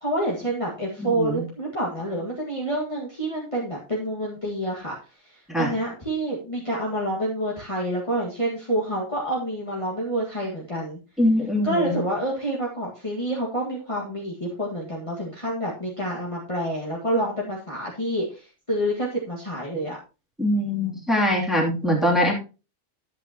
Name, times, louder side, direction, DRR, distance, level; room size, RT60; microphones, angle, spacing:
voice 1, 0.0-5.0 5.6-11.0 11.6-20.0, right 1 dB, 25° left, -5 dB, 1.9 m, -28 dB
voice 2, 1.0-1.4 5.5-5.7 11.2-11.9 20.4-22.3, left 1 dB, ahead, -2 dB, 2.8 m, -22 dB
11.5 x 8.1 x 2.9 m, 0.30 s
omnidirectional pair, 1.4 m